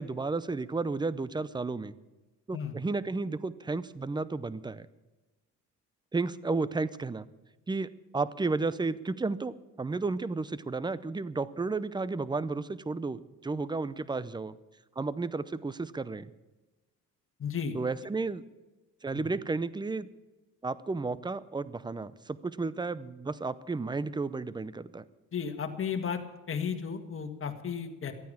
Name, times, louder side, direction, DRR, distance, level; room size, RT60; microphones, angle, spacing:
voice 1, 0.0-1.9 2.5-4.9 6.1-7.3 7.7-14.6 15.0-16.3 17.7-18.4 19.0-20.1 20.6-25.0, right 3 dB, 15° right, 17 dB, 0.6 m, -33 dB
voice 2, 17.4-17.8 19.1-19.2 25.3-26.2 26.5-28.1, left 7 dB, 45° left, 6 dB, 1.8 m, -34 dB
13.5 x 9.3 x 8.7 m, 1.1 s
cardioid pair, 90°, 30 cm